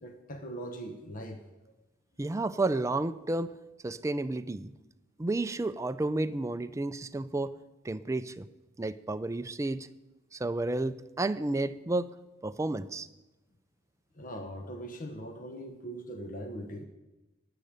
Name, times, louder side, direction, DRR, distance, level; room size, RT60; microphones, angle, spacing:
voice 1, 0.0-1.4 14.1-16.9, right 1 dB, 45° left, 6 dB, 1.0 m, -41 dB
voice 2, 2.2-3.5 3.8-4.7 5.2-7.5 7.8-8.5 8.8-9.9 10.3-12.1 12.4-13.1, right 2 dB, 15° right, 12 dB, 0.4 m, -31 dB
11.5 x 6.7 x 8.9 m, 1.0 s
head